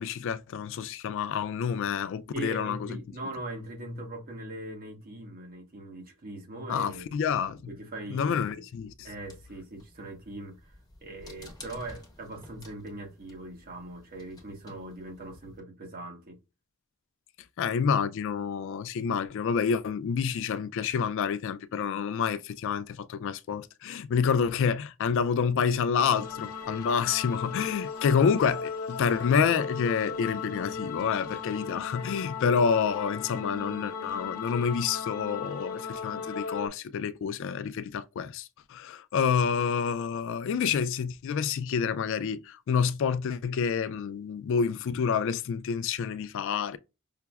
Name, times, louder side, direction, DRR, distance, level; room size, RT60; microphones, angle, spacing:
voice 1, 0.0-2.9 6.7-7.6 8.1-9.1 17.6-46.8, left 6 dB, 60° left, 0.3 m, -28 dB
voice 2, 2.3-7.0 7.7-8.6 9.0-10.8 11.0-16.4, right 2 dB, 45° right, 1.0 m, -41 dB
sound 1, 9.1-15.6, left 2 dB, 20° left, 1.0 m, -52 dB
sound 2, 26.0-36.7, left 6 dB, 85° left, 0.7 m, -37 dB
5.6 x 2.0 x 2.3 m
head